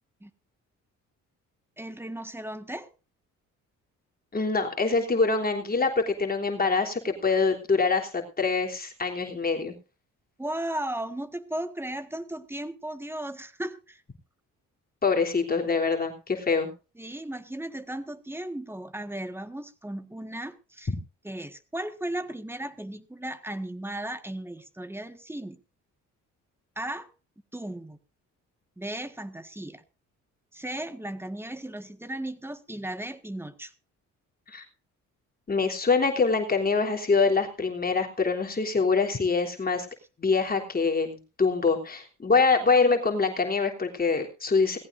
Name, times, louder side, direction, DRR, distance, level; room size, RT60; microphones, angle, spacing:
voice 1, 1.8-2.9 10.4-14.0 17.0-20.9 21.2-25.6 26.7-27.1 27.5-28.0 28.8-29.8 30.5-33.7, right 1 dB, 10° right, 10 dB, 1.6 m, -36 dB
voice 2, 4.3-9.7 15.0-16.7 20.9-21.0 34.5-34.6 35.5-39.9 40.2-44.8, left 4 dB, 30° left, 2 dB, 3.3 m, -25 dB
18.5 x 15.5 x 2.6 m, 0.33 s
cardioid pair, 90°, 30 cm